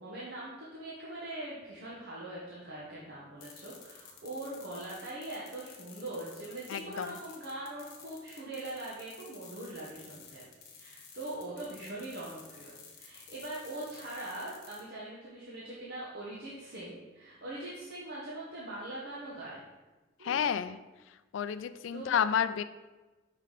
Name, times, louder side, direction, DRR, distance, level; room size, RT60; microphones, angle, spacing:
voice 1, 0.0-10.4 10.8-19.6 20.2-20.4 21.9-22.2, right 1 dB, 55° right, -6 dB, 1.1 m, -42 dB
sound 1, 3.4-14.8, left 6 dB, 55° left, 1.3 m, -52 dB
voice 2, 6.7-7.1 20.2-20.8 21.3-22.6, left 8 dB, 75° left, 13 dB, 0.3 m, -30 dB
5.4 x 4.1 x 4.9 m, 1.2 s
head